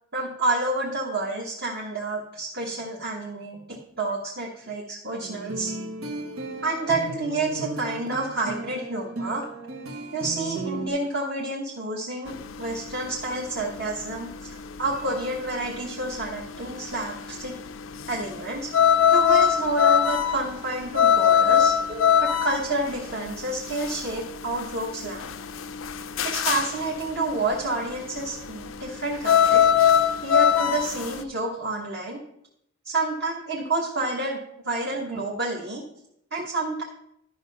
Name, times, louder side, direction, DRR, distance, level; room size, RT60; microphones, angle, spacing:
voice 1, 0.1-5.7 6.6-9.4 10.1-17.5 18.1-18.7 19.1-25.3 26.2-29.6 30.2-32.2 32.8-35.8 36.3-36.8, right 2 dB, 50° right, -3 dB, 1.2 m, -29 dB
sound 1, 5.2-10.9, right 2 dB, 85° right, 1.5 m, -35 dB
sound 2, 12.3-31.2, left 8 dB, 70° left, 0.5 m, -23 dB
11.5 x 5.5 x 5.4 m, 0.75 s
head